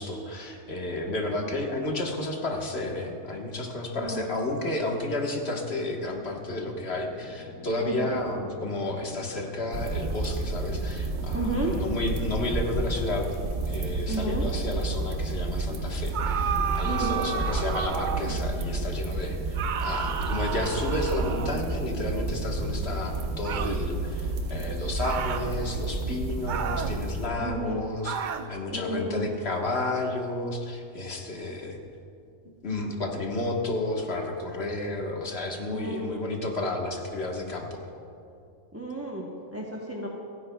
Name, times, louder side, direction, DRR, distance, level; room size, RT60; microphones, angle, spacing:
voice 1, 0.0-13.3 13.7-31.8 32.6-37.9, left 2 dB, 50° left, 1 dB, 1.5 m, -32 dB
voice 2, 1.0-1.5 4.0-4.2 7.8-8.2 11.3-11.8 14.1-14.5 16.8-17.3 27.4-27.8 28.7-29.3 35.7-36.1 38.7-40.1, right 2 dB, 15° right, -3 dB, 0.8 m, -32 dB
sound 1, 5.6-22.1, left 3 dB, 70° left, 1.3 m, -48 dB
sound 2, 9.7-27.3, right 2 dB, 60° right, 1.2 m, -31 dB
sound 3, 16.1-18.4 19.5-21.8 23.4-23.8 25.0-25.5 26.5-27.0 28.0-28.5, right 8 dB, 85° right, 0.4 m, -32 dB
28.5 x 9.9 x 2.3 m, 2.6 s
omnidirectional pair, 1.4 m